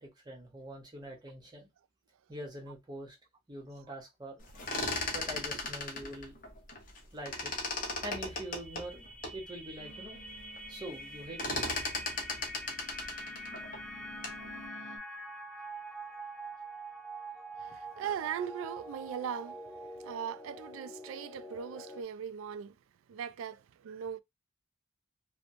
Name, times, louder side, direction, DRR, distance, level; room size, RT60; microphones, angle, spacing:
voice 1, 0.0-1.7 2.3-3.2 3.5-4.4 5.1-6.4 7.1-7.5 8.0-9.1 9.3-10.2 10.7-11.8, right 1 dB, 20° right, 0.8 m, -44 dB
sound 1, 4.4-7.0 7.3-9.4 9.9-10.0 10.3-10.7 10.9-14.5, left 3 dB, 40° left, 0.7 m, -36 dB
sound 2, 8.0-22.0, right 1 dB, 5° left, 0.3 m, -45 dB
sound 3, 9.8-15.0, equal, 85° left, 0.8 m, -53 dB
voice 2, 17.6-19.6 20.0-22.7 23.1-24.2, right 8 dB, 80° right, 0.3 m, -39 dB
2.9 x 2.1 x 2.6 m
head